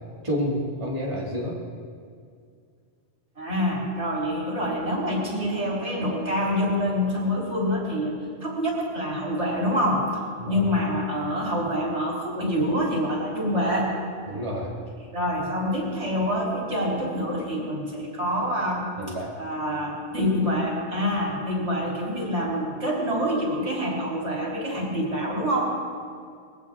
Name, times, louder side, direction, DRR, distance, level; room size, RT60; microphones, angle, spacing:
voice 1, 0.2-1.6 10.4-10.7 14.3-14.7 19.0-19.3, equal, 25° right, -4 dB, 2.3 m, -29 dB
voice 2, 3.4-8.2 8.4-10.1 10.5-13.9 15.1-18.9 19.4-25.8, equal, 75° right, -3 dB, 3.7 m, -26 dB
21.5 x 17.0 x 3.6 m, 2.2 s
omnidirectional pair, 1.2 m